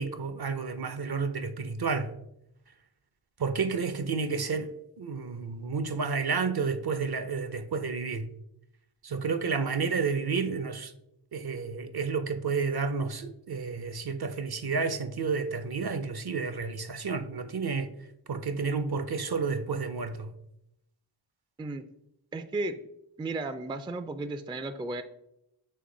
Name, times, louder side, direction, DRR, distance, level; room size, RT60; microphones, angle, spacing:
voice 1, 0.0-2.1 3.4-8.3 9.0-10.9 11.3-17.9 18.3-20.3, right 5 dB, 50° right, 0.6 m, -31 dB
voice 2, 22.3-22.8 23.2-25.0, right 2 dB, 10° right, 0.3 m, -34 dB
7.7 x 3.2 x 3.8 m
wide cardioid pair, 40°, 48 cm